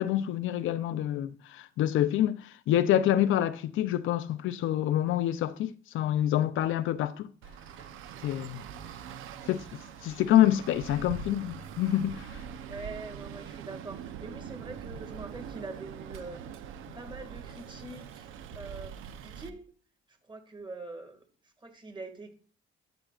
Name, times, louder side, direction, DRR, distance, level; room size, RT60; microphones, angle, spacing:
voice 1, 0.0-7.3 8.2-8.6 9.5-9.6 10.0-12.3, left 12 dB, 80° left, 0.6 m, -27 dB
Traffic noise roadway noise, 7.4-19.5, right 7 dB, 90° right, 0.7 m, -43 dB
voice 2, 12.5-16.4 16.9-19.7 20.3-22.3, right 3 dB, 25° right, 2.0 m, -44 dB
11.5 x 7.2 x 2.4 m
cardioid pair, 90°, 20 cm